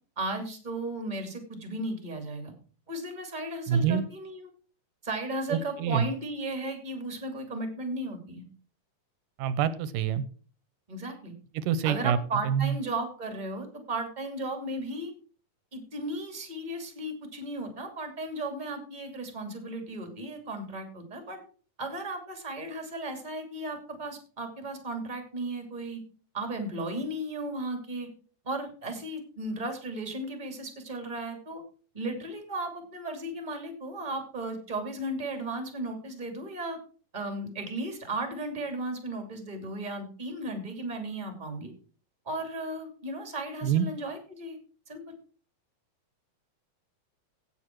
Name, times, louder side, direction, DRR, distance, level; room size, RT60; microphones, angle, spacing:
voice 1, 0.2-2.5 2.9-4.5 5.0-8.4 10.9-11.3 11.8-15.1 15.7-21.4 21.8-26.0 26.3-28.1 28.4-31.6 31.9-36.8 37.1-41.7 42.2-44.6 44.9-45.0, right 2 dB, 15° right, 5 dB, 2.3 m, -35 dB
voice 2, 3.7-4.1 5.5-6.0 9.4-10.2 11.6-12.2 12.4-12.8 43.6-43.9, right 8 dB, 85° right, 15 dB, 2.4 m, -26 dB
16.5 x 7.1 x 4.6 m, 0.41 s
omnidirectional pair, 3.9 m